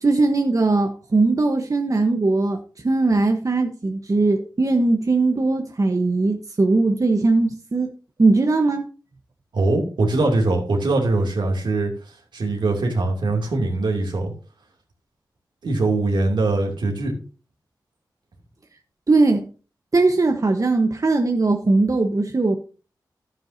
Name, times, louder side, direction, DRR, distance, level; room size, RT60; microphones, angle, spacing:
voice 1, 0.0-2.6 2.8-7.9 8.2-8.9 19.1-19.5 19.9-22.6, right 3 dB, 45° right, 1.1 m, -19 dB
voice 2, 9.5-11.9 12.3-14.3 15.6-17.2, right 2 dB, 80° right, 2.6 m, -22 dB
11.5 x 9.4 x 2.7 m
cardioid pair, 40°, 8 cm